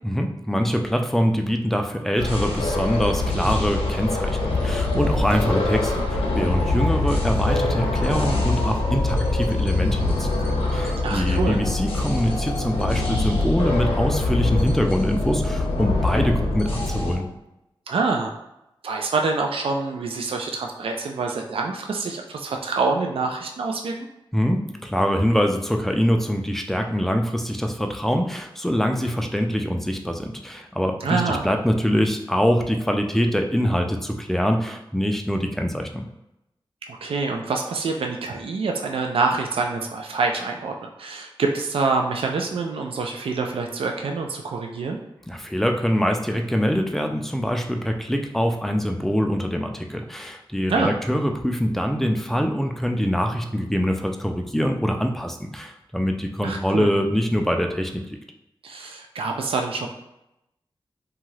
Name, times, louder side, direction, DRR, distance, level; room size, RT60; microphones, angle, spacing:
voice 1, 0.0-17.2 24.3-36.0 45.3-58.2, equal, 5° left, 4 dB, 0.4 m, -24 dB
sound 1, 2.2-17.2, left 2 dB, 90° left, 0.6 m, -24 dB
voice 2, 11.0-11.6 17.9-18.3 18.8-23.9 31.0-31.4 36.9-45.0 50.7-50.9 56.4-56.9 58.6-59.9, right 4 dB, 75° right, 2 dB, 0.4 m, -26 dB
2.7 x 2.4 x 3.1 m, 0.89 s
wide cardioid pair, 65°, 9 cm